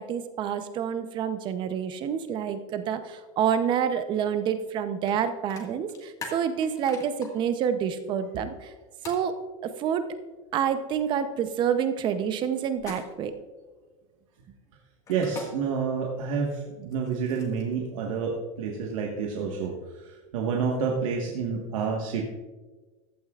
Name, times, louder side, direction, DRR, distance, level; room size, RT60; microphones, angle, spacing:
voice 1, 0.0-8.7 9.0-9.4 9.6-10.1 10.5-13.3, right 8 dB, 30° right, 10 dB, 0.7 m, -28 dB
sound 1, 5.1-5.2 5.5-7.3 9.0-9.2 12.8-13.3 15.1-15.5 16.8-17.7, left 4 dB, 20° left, 1.7 m, -41 dB
voice 2, 15.1-20.0 20.3-22.2, right 5 dB, 80° right, 0 dB, 1.5 m, -29 dB
15.0 x 11.5 x 2.4 m, 1.3 s
supercardioid pair, 165°, 17 cm